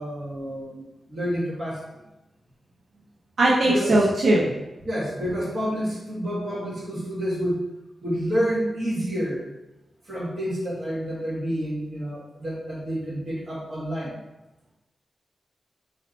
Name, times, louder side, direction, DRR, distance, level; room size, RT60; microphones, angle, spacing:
voice 1, 0.0-2.0 3.6-4.0 4.8-7.6 8.0-9.5 10.1-14.1, equal, 35° right, -6 dB, 1.6 m, -29 dB
voice 2, 3.4-4.5, right 1 dB, 65° right, -5 dB, 0.7 m, -19 dB
4.2 x 2.8 x 4.2 m, 1.0 s
wide cardioid pair, 155°, 0 cm